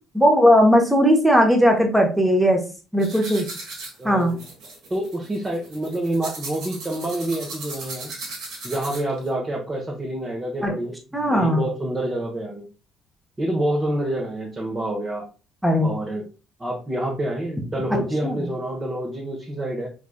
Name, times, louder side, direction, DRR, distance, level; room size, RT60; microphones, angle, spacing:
voice 1, 0.1-2.6 2.9-3.5 4.0-4.3 10.6-10.7 11.1-11.6 15.6-15.9 18.2-18.3, equal, 5° right, 2 dB, 1.1 m, -17 dB
sound 1, 3.0-9.3, right 2 dB, 60° right, 1.5 m, -37 dB
voice 2, 4.0-4.4 4.9-8.1 8.6-12.7 13.4-15.3 15.8-16.3 16.6-19.9, right 1 dB, 25° right, -2 dB, 1.1 m, -27 dB
4.8 x 3.4 x 2.3 m, 0.33 s
figure-of-eight pair, 50°, 0 cm